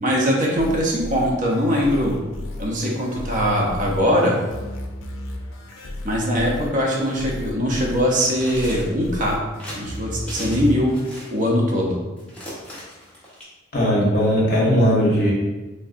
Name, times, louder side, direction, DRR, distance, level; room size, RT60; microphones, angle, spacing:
voice 1, 0.0-2.2 2.6-4.4 5.8-9.4 9.8-10.9 11.3-12.0, equal, 40° right, -2 dB, 0.5 m, -21 dB
sound 1, 0.6-11.1, left 1 dB, 80° left, 0.4 m, -34 dB
sound 2, 8.2-9.0 9.6-9.8 10.3-10.7 10.9-11.5 12.2-13.4, equal, 5° left, 0.7 m, -38 dB
voice 2, 13.7-15.3, equal, 50° left, -5 dB, 0.9 m, -18 dB
3.2 x 2.7 x 2.4 m, 1.2 s
head